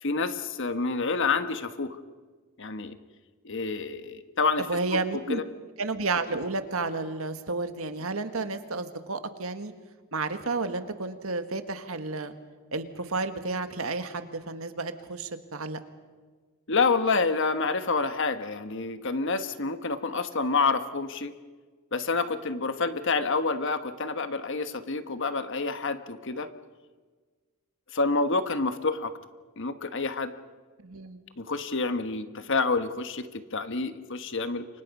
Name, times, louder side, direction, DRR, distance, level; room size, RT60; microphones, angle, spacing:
voice 1, 0.0-2.0 2.6-3.0 3.4-4.7 4.9-5.0 5.3-5.4 16.7-21.3 21.9-26.5 27.9-29.1 29.6-30.3 31.4-34.7, left 4 dB, 60° left, 10 dB, 1.3 m, -28 dB
voice 2, 4.7-5.4 5.8-9.7 10.1-12.3 12.7-15.8 30.8-31.2, right 3 dB, 70° right, 9 dB, 1.7 m, -31 dB
29.5 x 25.0 x 5.5 m, 1.5 s
head